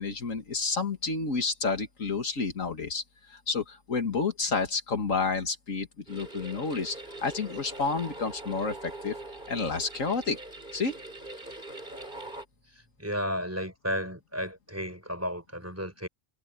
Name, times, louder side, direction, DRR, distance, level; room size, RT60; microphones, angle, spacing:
voice 1, 0.0-3.0 3.3-9.2 9.5-10.4 10.7-10.9, left 4 dB, 75° left, 2.4 m, -30 dB
sound 1, 6.1-12.4, right 2 dB, 35° right, 6.4 m, -42 dB
voice 2, 13.0-16.1, equal, 10° right, 4.6 m, -33 dB
omnidirectional pair, 1.4 m